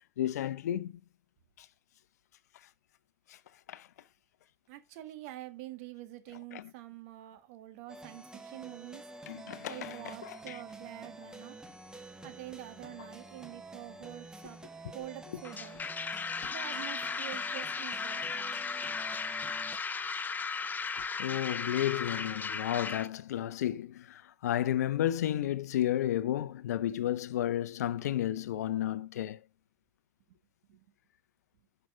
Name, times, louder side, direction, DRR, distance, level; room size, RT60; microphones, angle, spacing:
voice 1, 0.2-0.9 1.6-1.7 3.7-3.9 6.5-6.7 9.3-10.6 21.2-29.4, left 12 dB, 75° left, 0.6 m, -32 dB
voice 2, 4.7-9.1 9.7-11.6 12.2-14.6 14.9-15.8 16.5-18.5 30.7-30.8, right 15 dB, 65° right, 1.6 m, -46 dB
sound 1, 7.9-19.8, right 2 dB, 10° right, 1.7 m, -48 dB
sound 2, 15.4-23.1, left 5 dB, 20° left, 0.8 m, -36 dB
10.5 x 5.8 x 3.7 m
figure-of-eight pair, 75°, 9 cm